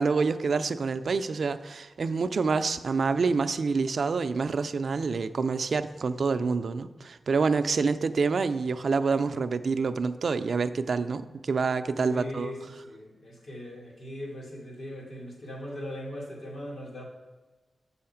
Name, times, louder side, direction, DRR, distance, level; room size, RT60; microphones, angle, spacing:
voice 1, 0.0-12.5, right 4 dB, 65° right, 10 dB, 0.4 m, -27 dB
voice 2, 12.1-17.1, left 1 dB, 85° left, -3 dB, 2.2 m, -39 dB
7.7 x 5.6 x 5.8 m, 1.2 s
wide cardioid pair, 125°, 0 cm